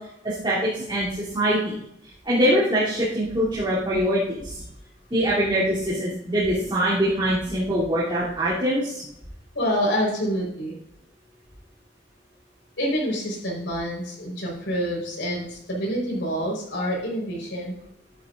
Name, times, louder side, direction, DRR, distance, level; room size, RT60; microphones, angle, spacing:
voice 1, 0.2-1.1 1.3-1.8 2.2-4.5 5.1-9.0, equal, 25° right, -10 dB, 3.2 m, -23 dB
voice 2, 9.5-10.7 12.8-17.7, equal, 85° left, -2 dB, 4.6 m, -27 dB
12.0 x 10.5 x 2.6 m, 0.77 s
head